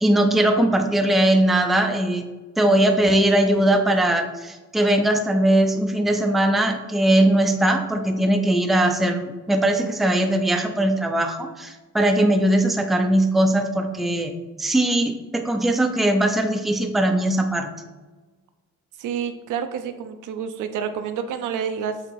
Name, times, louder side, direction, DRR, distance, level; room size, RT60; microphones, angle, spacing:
voice 1, 0.0-2.3 2.6-14.3 14.6-17.7, right 1 dB, ahead, 5 dB, 0.5 m, -20 dB
voice 2, 19.0-22.0, right 7 dB, 75° right, 8 dB, 0.7 m, -29 dB
7.6 x 2.9 x 4.6 m, 1.2 s
cardioid pair, 120°, 31 cm